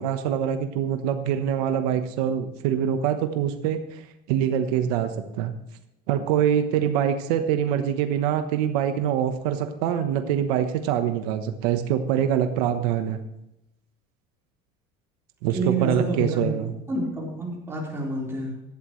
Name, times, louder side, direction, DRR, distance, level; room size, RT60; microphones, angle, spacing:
voice 1, 0.0-5.5 6.1-13.2 15.4-16.7, right 9 dB, 90° right, 8 dB, 1.1 m, -24 dB
voice 2, 15.5-16.5 16.9-18.6, right 2 dB, 10° right, -4 dB, 4.4 m, -28 dB
16.0 x 12.0 x 3.2 m, 0.87 s
cardioid pair, 155°, 19 cm